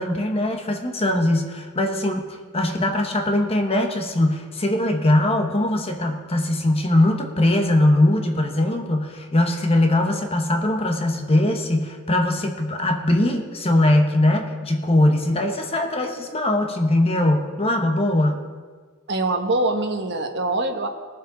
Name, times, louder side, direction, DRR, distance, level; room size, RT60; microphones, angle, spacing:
voice 1, 0.0-18.4, left 1 dB, 30° left, 4 dB, 1.0 m, -21 dB
voice 2, 19.1-20.9, right 2 dB, 55° right, 4 dB, 1.2 m, -23 dB
19.0 x 7.4 x 3.9 m, 1.5 s
head